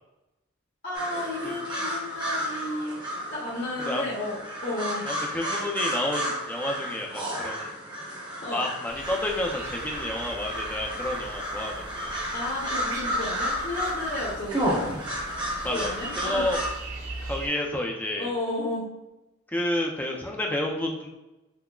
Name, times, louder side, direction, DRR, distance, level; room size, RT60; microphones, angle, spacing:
voice 1, 0.8-3.0 3.3-5.1 8.4-8.6 12.3-14.9 15.7-16.6 18.2-18.9, left 2 dB, 45° left, -6 dB, 0.8 m, -32 dB
sound 1, 0.9-16.7, equal, 20° right, 0.7 m, -32 dB
voice 2, 5.1-7.7 8.5-12.2 15.6-16.6 17.2-18.3 19.5-21.1, left 1 dB, 10° left, 0 dB, 0.4 m, -30 dB
sound 2, 8.9-17.5, right 2 dB, 90° right, 0.6 m, -41 dB
5.8 x 2.0 x 2.3 m, 1.0 s
head